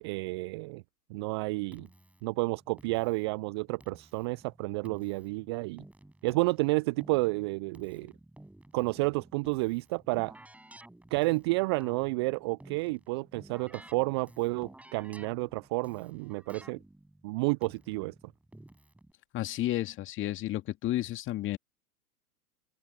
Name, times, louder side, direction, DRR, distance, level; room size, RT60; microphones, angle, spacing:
voice 1, 0.0-0.8 1.1-1.9 2.2-5.8 6.2-8.1 8.7-10.3 11.1-16.8 17.2-18.1, right 26 dB, 20° right, 0.4 m, -30 dB
Keyboard (musical), 1.7-19.1, right 1 dB, 5° right, 5.6 m, -54 dB
voice 2, 19.3-21.6, left 14 dB, 25° left, 2.6 m, -32 dB
open air
figure-of-eight pair, 105°, 46 cm